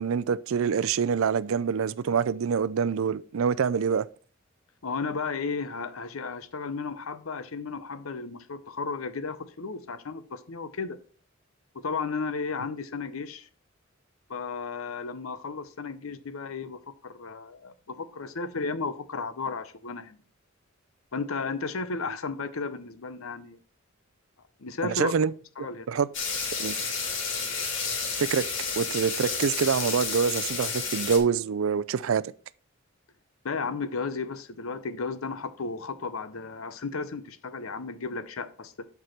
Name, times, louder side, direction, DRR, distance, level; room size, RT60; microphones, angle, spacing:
voice 1, 0.0-4.1 24.8-25.3 25.9-26.1 26.6-26.8 28.2-28.5 28.8-32.2, right 6 dB, 70° right, 0.4 m, -25 dB
voice 2, 4.8-11.0 11.7-13.5 14.3-20.2 21.1-23.6 24.6-25.1 25.6-25.9 33.4-38.7, left 4 dB, 90° left, 0.8 m, -34 dB
sound 1, 26.1-31.2, left 5 dB, 65° left, 2.3 m, -31 dB
7.8 x 4.8 x 5.8 m
head